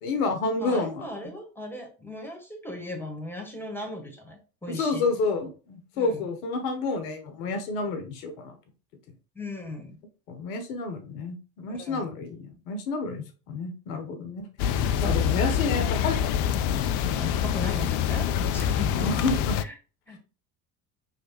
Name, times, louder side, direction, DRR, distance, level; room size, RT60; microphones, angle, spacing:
voice 1, 0.0-1.1 4.7-8.5 10.3-16.7 18.9-19.5, left 3 dB, 60° left, 7 dB, 0.9 m, -30 dB
voice 2, 0.6-5.1 5.9-6.3 9.3-10.0 11.7-12.0 17.1-19.1 19.6-19.7 20.1-20.2, left 1 dB, 5° left, 4 dB, 1.4 m, -37 dB
sound 1, 14.6-19.6, left 9 dB, 45° left, 0.4 m, -25 dB
5.5 x 3.2 x 2.9 m, 0.35 s
figure-of-eight pair, 65°, 46 cm